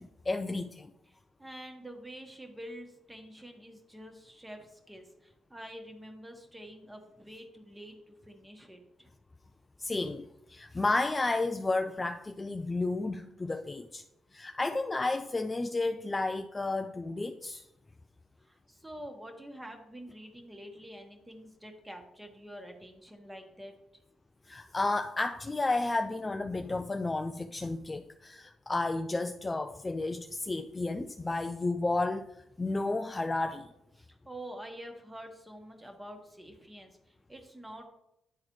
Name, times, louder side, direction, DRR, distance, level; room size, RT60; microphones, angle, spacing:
voice 1, 0.0-0.9 9.8-14.0 14.3-17.6 24.5-32.3 32.6-33.7, left 2 dB, 20° left, 0.3 m, -32 dB
voice 2, 1.1-9.1 18.4-23.7 34.0-37.9, equal, 10° right, 1.3 m, -47 dB
10.0 x 3.9 x 3.1 m
cardioid pair, 90°, 0 cm